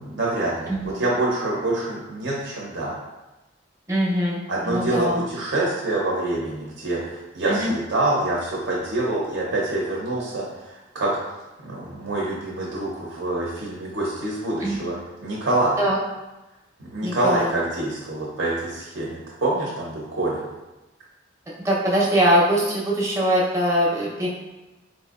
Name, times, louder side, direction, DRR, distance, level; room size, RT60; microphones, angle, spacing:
voice 1, 0.0-2.9 4.5-11.1 11.6-14.9 15.2-15.8 16.8-20.4, right 2 dB, 70° right, -5 dB, 0.7 m, -26 dB
voice 2, 3.9-5.2 7.4-7.7 14.6-14.8 15.8-16.0 17.0-17.5 21.5-24.3, equal, 15° right, -5 dB, 0.6 m, -22 dB
4.3 x 2.6 x 2.4 m, 1.1 s
head